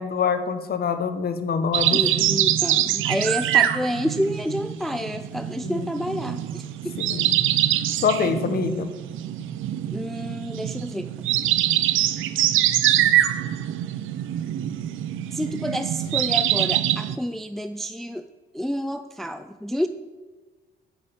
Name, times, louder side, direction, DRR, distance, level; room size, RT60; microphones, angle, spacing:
voice 1, 0.0-2.0 5.6-5.9 7.0-7.4 8.0-8.9, left 6 dB, 50° left, 9 dB, 1.1 m, -25 dB
sound 1, 1.7-17.2, right 12 dB, 85° right, 0.6 m, -24 dB
voice 2, 1.9-6.9 9.9-11.1 15.3-18.3 18.5-19.9, equal, ahead, 9 dB, 0.4 m, -29 dB
8.4 x 6.7 x 7.1 m, 1.3 s
cardioid pair, 90°, 20 cm